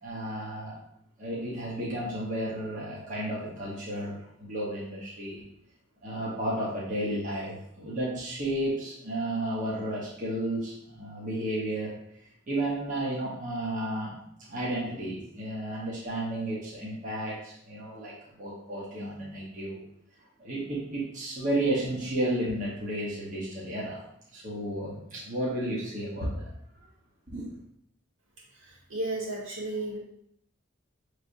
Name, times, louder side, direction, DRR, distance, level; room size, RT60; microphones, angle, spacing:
voice 1, 0.0-0.8 1.2-5.4 6.0-12.0 12.5-19.8 20.4-24.0 24.3-26.5 27.3-27.5, right 1 dB, 40° right, -7 dB, 1.1 m, -32 dB
voice 2, 28.5-30.0, right 2 dB, 75° right, -5 dB, 1.6 m, -34 dB
6.2 x 3.3 x 2.6 m, 0.73 s
head